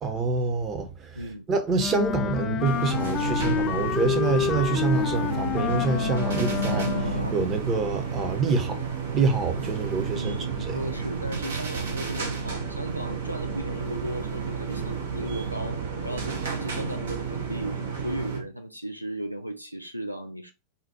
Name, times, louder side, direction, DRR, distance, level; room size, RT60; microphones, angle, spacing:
voice 1, 0.0-1.2 1.5-8.8 9.1-10.8, right 4 dB, 30° right, 1.0 m, -27 dB
voice 2, 1.1-1.5 10.1-17.8 18.0-20.5, right 1 dB, 90° right, 0.4 m, -36 dB
Wind instrument woodwind instrument, 1.8-7.3, left 9 dB, 30° left, 0.3 m, -29 dB
sound 1, 1.9-7.3, equal, 90° left, 0.5 m, -33 dB
sound 2, 2.6-18.4, right 5 dB, 65° right, 1.0 m, -32 dB
4.2 x 2.5 x 4.3 m
figure-of-eight pair, 90°, 0 cm